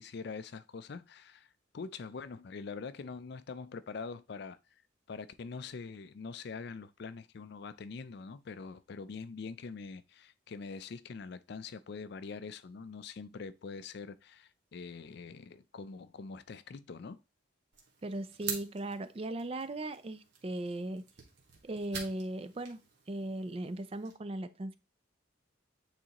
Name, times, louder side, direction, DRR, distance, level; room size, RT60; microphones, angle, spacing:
voice 1, 0.0-1.5 1.7-4.6 5.1-17.2, left 4 dB, 55° left, 0.4 m, -44 dB
sound 1, 17.7-24.1, right 5 dB, 55° right, 1.5 m, -47 dB
voice 2, 18.0-21.0 21.6-22.8 23.1-24.7, right 1 dB, 30° right, 0.4 m, -38 dB
8.7 x 4.0 x 2.9 m
head